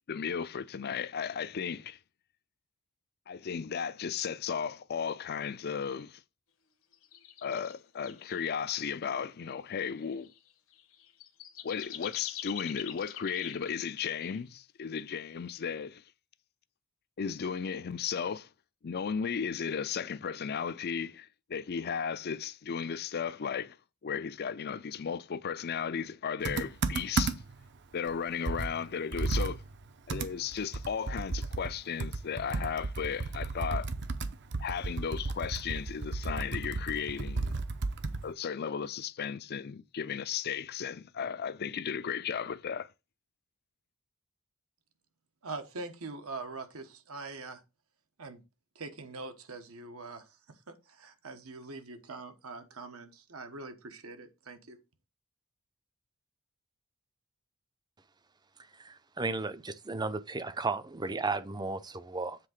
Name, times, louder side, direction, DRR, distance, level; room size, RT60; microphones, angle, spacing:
voice 1, 0.1-2.0 3.3-6.2 7.4-10.3 11.6-16.0 17.2-18.5 18.8-23.8 24.0-27.4 27.9-29.6 30.1-33.9 34.6-37.6 38.2-42.9, left 7 dB, 50° left, 0.4 m, -35 dB
sound 1, 6.9-7.7 8.0-8.5 9.3-9.5 9.8-13.7 14.0-14.4 15.5-15.8, left 11 dB, 70° left, 1.2 m, -44 dB
Computer keyboard, 26.4-27.6 28.1-28.2 28.5-38.3, right 3 dB, 55° right, 0.7 m, -34 dB
voice 2, 45.4-47.6 48.2-48.4 48.7-50.2 50.7-54.8, right 3 dB, 80° right, 1.2 m, -43 dB
voice 3, 58.8-62.4, right 3 dB, 20° right, 0.5 m, -34 dB
7.6 x 3.6 x 6.4 m
head